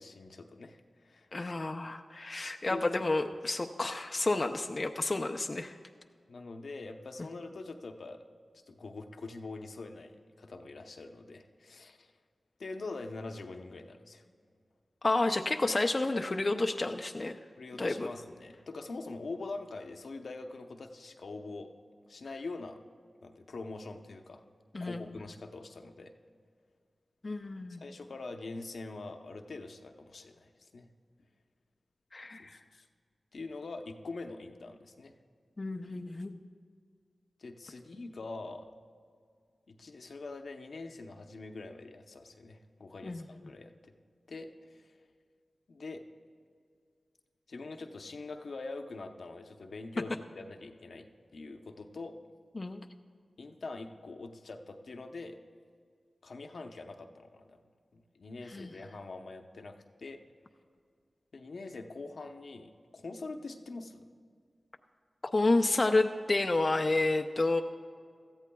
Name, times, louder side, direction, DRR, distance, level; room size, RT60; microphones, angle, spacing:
voice 1, 0.0-1.5 2.7-3.0 6.3-8.2 8.7-12.1 12.6-14.2 17.6-21.7 22.1-22.8 23.2-24.4 24.8-26.1 27.7-30.9 32.4-32.9 33.3-35.2 37.4-38.7 39.7-43.9 44.3-44.9 45.7-46.0 47.5-52.2 53.4-55.4 56.2-57.6 57.9-60.2 61.3-64.1, left 3 dB, 75° left, 5 dB, 0.8 m, -44 dB
voice 2, 1.3-5.8 15.0-17.4 17.8-18.1 24.7-25.1 27.2-27.8 32.1-32.6 35.6-36.4 43.0-43.2 52.6-52.8 58.5-58.7 65.3-67.6, left 2 dB, 40° left, 4 dB, 0.5 m, -30 dB
17.5 x 13.5 x 2.3 m, 2.1 s
cardioid pair, 50°, 0 cm